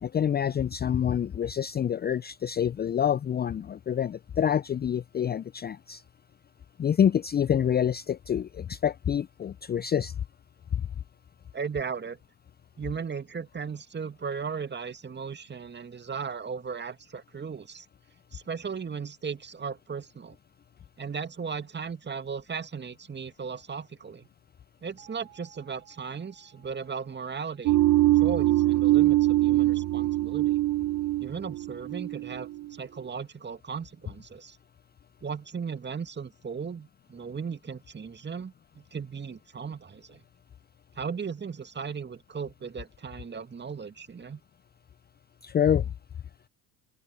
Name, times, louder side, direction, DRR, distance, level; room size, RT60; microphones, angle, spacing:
voice 1, 0.0-6.0 6.8-10.1 10.7-10.9 45.4-45.9, left 9 dB, 20° left, 0.6 m, -27 dB
voice 2, 11.5-12.2 12.8-17.9 18.3-20.4 21.0-24.3 24.8-27.8 28.2-30.6 31.2-34.6 35.2-40.2 41.0-44.4, right 6 dB, 25° right, 2.2 m, -36 dB
sound 1, 25.0-29.7, right 19 dB, 70° right, 7.2 m, -60 dB
sound 2, 27.7-32.7, right 16 dB, 40° right, 0.7 m, -23 dB
open air
figure-of-eight pair, 65°, 46 cm